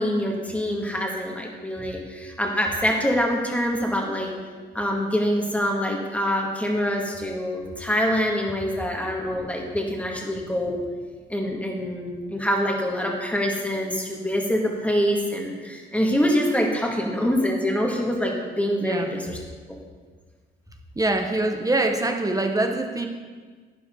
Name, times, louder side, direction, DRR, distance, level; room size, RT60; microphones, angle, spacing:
voice 1, 0.0-4.3 4.7-10.8 11.3-19.4 19.7-19.8, equal, 5° left, 0 dB, 2.2 m, -25 dB
voice 2, 18.8-19.1 21.0-23.1, right 2 dB, 15° right, 4 dB, 1.1 m, -24 dB
12.0 x 9.4 x 3.9 m, 1.5 s
cardioid pair, 90°, 20 cm